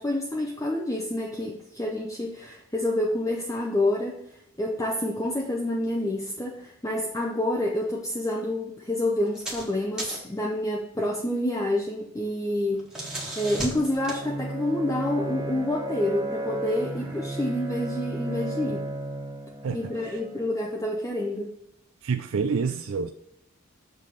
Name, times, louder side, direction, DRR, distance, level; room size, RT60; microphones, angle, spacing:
voice 1, 0.0-4.2 4.6-18.9 19.7-21.5, left 1 dB, 15° left, 0 dB, 0.7 m, -28 dB
sound 1, 9.3-9.7 10.0-10.4 12.6-14.2, right 1 dB, 5° right, 1.4 m, -35 dB
Bowed string instrument, 12.9-20.8, right 2 dB, 20° right, 1.4 m, -34 dB
voice 2, 22.0-23.1, right 5 dB, 80° right, 7 dB, 0.4 m, -27 dB
6.7 x 3.7 x 6.4 m, 0.77 s
head